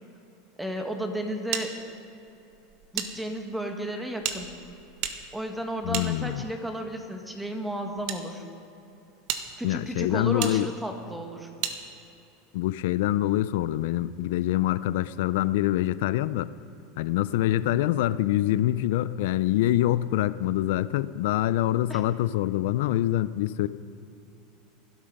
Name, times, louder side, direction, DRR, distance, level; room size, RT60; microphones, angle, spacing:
voice 1, 0.6-1.7 2.9-4.5 5.3-8.4 9.6-11.5 21.9-22.0, right 1 dB, 5° right, 4 dB, 1.7 m, -33 dB
sound 1, 1.5-3.1 3.4-3.5 4.2-6.7 7.5-8.2 8.8-8.9 9.3-9.4 10.4-10.5 11.6-11.8, right 9 dB, 60° right, 1.3 m, -34 dB
voice 2, 5.9-6.4 9.6-10.7 12.5-16.5 17.0-23.7, left 14 dB, 75° left, 15 dB, 0.4 m, -25 dB
18.5 x 12.5 x 5.4 m, 3.0 s
supercardioid pair, 130°, 0 cm